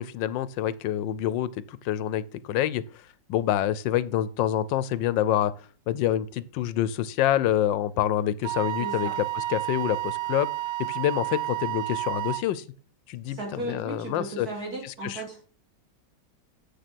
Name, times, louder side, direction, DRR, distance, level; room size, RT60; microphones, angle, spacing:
voice 1, 0.0-2.8 3.3-5.5 5.9-10.5 10.8-12.6 13.1-14.5 15.0-15.2, left 11 dB, 90° left, 1.3 m, -27 dB
Wind instrument woodwind instrument, 8.4-12.4, right 18 dB, 80° right, 1.3 m, -31 dB
voice 2, 8.8-9.2 13.3-15.5, right 2 dB, 55° right, 3.9 m, -36 dB
7.9 x 6.7 x 6.1 m
omnidirectional pair, 1.9 m